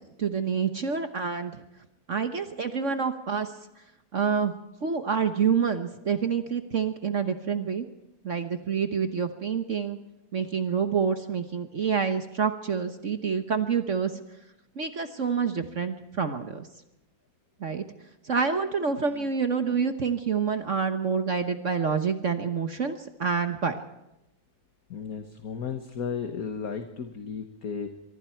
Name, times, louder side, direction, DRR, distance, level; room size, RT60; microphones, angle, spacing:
voice 1, 0.2-1.6 2.1-3.5 4.1-4.6 4.8-7.9 8.2-10.0 10.3-14.1 14.8-16.7 17.6-17.8 18.2-23.8, right 6 dB, 45° right, 8 dB, 1.2 m, -27 dB
voice 2, 24.9-27.9, left 6 dB, 50° left, 6 dB, 1.7 m, -34 dB
24.5 x 23.5 x 4.5 m, 0.90 s
omnidirectional pair, 2.1 m